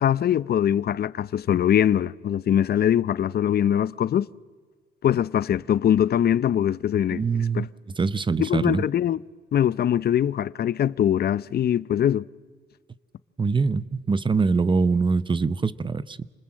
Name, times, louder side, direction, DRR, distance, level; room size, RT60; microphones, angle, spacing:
voice 1, 0.0-4.3 5.0-7.7 8.4-9.2 9.5-12.3, left 10 dB, 50° left, 0.6 m, -22 dB
voice 2, 7.1-7.7 8.0-8.8 13.4-16.3, right 4 dB, 25° right, 0.8 m, -23 dB
29.0 x 20.5 x 7.6 m
cardioid pair, 90°, 20 cm